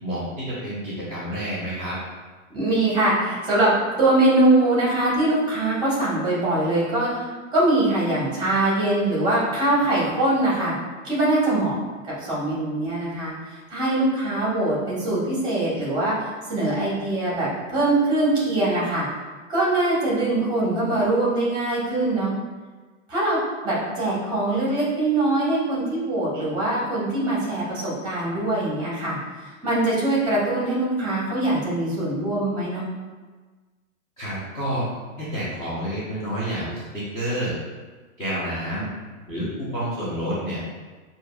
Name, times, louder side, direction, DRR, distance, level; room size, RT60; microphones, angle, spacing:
voice 1, 0.0-1.9 34.2-34.9 35.2-37.5 38.2-38.9 39.3-40.6, equal, 10° left, -12 dB, 0.7 m, -29 dB
voice 2, 2.5-7.2 7.5-10.7 11.0-11.7 12.2-13.3 13.7-19.1 19.5-22.3 23.1-29.2 29.4-32.8, right 2 dB, 10° right, -7 dB, 1.4 m, -22 dB
6.5 x 2.7 x 2.3 m, 1.3 s
hypercardioid pair, 155°, 41 cm